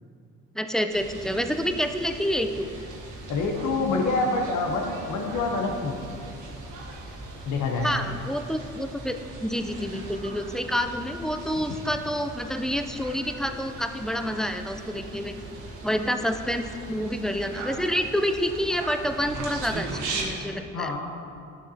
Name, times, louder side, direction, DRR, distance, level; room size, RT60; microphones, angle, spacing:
voice 1, 0.5-2.7 7.8-15.4 15.8-20.9, equal, ahead, 7 dB, 0.4 m, -28 dB
sound 1, 0.9-20.3, right 2 dB, 80° right, 1.4 m, -39 dB
voice 2, 3.3-6.0 7.4-7.9 20.7-21.0, left 3 dB, 75° left, 2 dB, 0.9 m, -26 dB
11.5 x 7.1 x 2.8 m, 2.4 s
cardioid pair, 90°, 30 cm